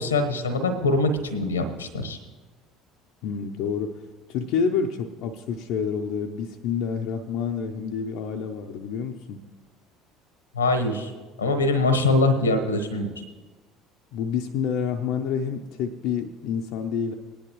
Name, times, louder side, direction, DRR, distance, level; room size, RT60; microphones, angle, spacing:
voice 1, 0.0-2.2 10.5-11.1 11.4-13.1, left 2 dB, 85° left, 8 dB, 1.1 m, -23 dB
voice 2, 3.2-4.0 4.3-9.4 14.1-17.2, left 6 dB, 60° left, 4 dB, 0.6 m, -28 dB
19.0 x 10.0 x 3.1 m, 1.3 s
figure-of-eight pair, 60°, 0 cm